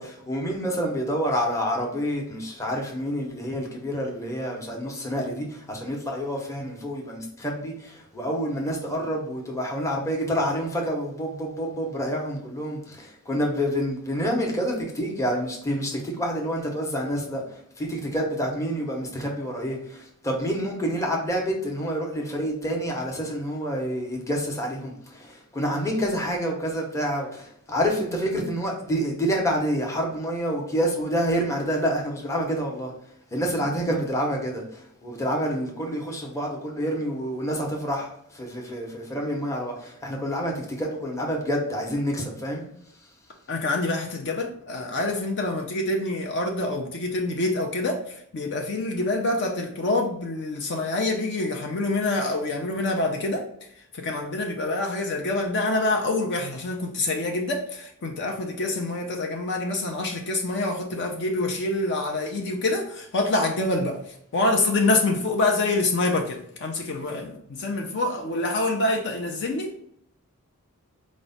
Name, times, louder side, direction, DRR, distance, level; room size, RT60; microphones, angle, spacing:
voice 1, 0.0-32.9 33.3-42.6, equal, 15° left, 0 dB, 0.7 m, -28 dB
voice 2, 43.5-53.7 53.9-69.7, left 2 dB, 55° left, 2 dB, 0.5 m, -26 dB
4.5 x 2.1 x 3.9 m, 0.69 s
head